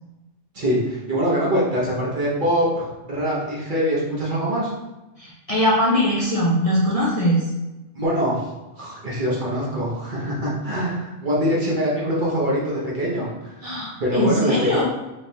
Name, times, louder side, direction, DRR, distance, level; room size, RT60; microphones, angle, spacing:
voice 1, 0.5-4.7 7.9-8.5 8.8-13.5 14.0-14.5, equal, 45° right, -5 dB, 0.9 m, -23 dB
voice 2, 5.2-7.4 13.6-14.8, equal, 40° left, -7 dB, 0.5 m, -21 dB
3.3 x 3.2 x 2.7 m, 1.0 s
omnidirectional pair, 1.3 m